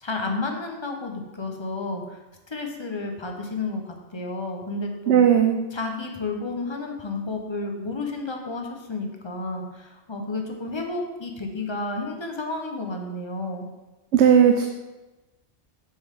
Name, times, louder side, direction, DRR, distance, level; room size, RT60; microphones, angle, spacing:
voice 1, 0.0-2.2 2.5-5.3 5.7-13.7, left 3 dB, 25° left, 2 dB, 0.8 m, -31 dB
voice 2, 5.1-5.6 14.1-14.6, right 8 dB, 75° right, 5 dB, 0.9 m, -16 dB
6.9 x 6.5 x 3.6 m, 1.1 s
omnidirectional pair, 1.2 m